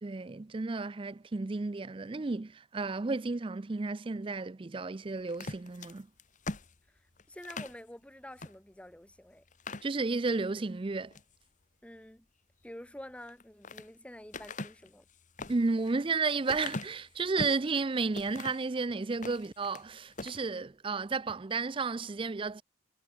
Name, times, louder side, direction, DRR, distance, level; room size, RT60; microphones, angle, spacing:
voice 1, 0.0-6.1 9.8-11.1 15.5-22.6, right 3 dB, 25° right, 0.4 m, -32 dB
sound 1, 5.3-7.8 8.4-8.6 8.9-9.0 9.5-10.4 10.9-11.4 13.2-13.9 14.3-17.7 18.1-18.7 19.1-19.9 20.1-20.4, left 3 dB, 40° left, 1.6 m, -42 dB
voice 2, 6.9-9.4 11.8-12.3 12.6-15.0, left 1 dB, 5° left, 1.0 m, -48 dB
head